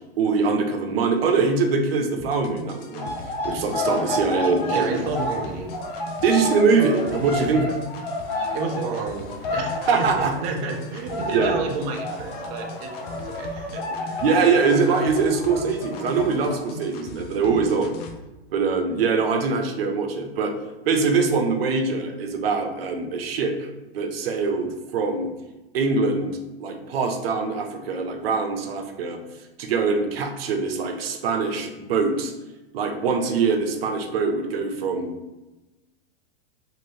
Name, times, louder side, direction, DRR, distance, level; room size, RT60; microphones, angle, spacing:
voice 1, 0.2-3.1 3.4-5.1 6.2-7.7 9.9-10.3 11.3-11.6 14.2-17.9 18.5-20.5 20.9-23.7 23.9-25.3 25.7-29.2 29.6-32.3 32.7-35.1, right 4 dB, 70° right, 5 dB, 0.6 m, -23 dB
sound 1, 2.2-18.2, left 3 dB, 40° left, 0.4 m, -41 dB
sound 2, 3.0-10.8 11.1-16.6, left 1 dB, 60° left, 1.1 m, -30 dB
voice 2, 4.7-5.7 7.3-7.5 8.5-9.7 10.0-14.2, right 4 dB, 35° right, 2 dB, 0.4 m, -31 dB
2.7 x 2.6 x 3.1 m, 1.1 s
hypercardioid pair, 130°, 31 cm